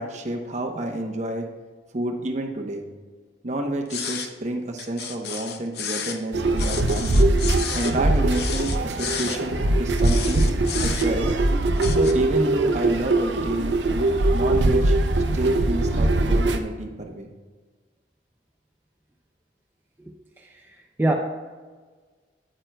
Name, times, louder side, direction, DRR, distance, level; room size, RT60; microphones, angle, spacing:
voice 1, 0.0-1.5 1.9-2.8 3.4-7.3 7.7-10.4 10.8-11.4 11.9-15.0 15.3-17.3, right 1 dB, 40° right, 0.8 m, -29 dB
sound 1, 3.9-4.3 4.8-6.2 6.6-8.0 8.3-9.4 10.0-11.3 11.8-12.1, left 7 dB, 60° left, 0.6 m, -32 dB
sound 2, 6.3-16.6, right 2 dB, 90° right, 0.6 m, -21 dB
voice 2, 20.0-21.1, right 1 dB, 10° right, 0.4 m, -27 dB
9.0 x 8.8 x 2.3 m
head